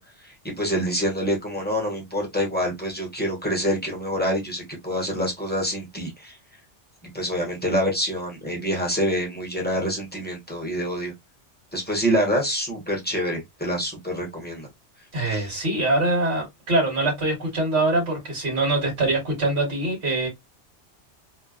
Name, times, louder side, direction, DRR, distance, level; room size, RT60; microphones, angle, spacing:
voice 1, 0.0-6.4 7.1-11.1 11.7-14.7 15.2-15.5, equal, 10° left, 0.8 m, -26 dB
voice 2, 15.1-20.3, right 2 dB, 55° right, 1.5 m, -23 dB
2.7 x 2.1 x 2.3 m
omnidirectional pair, 1.2 m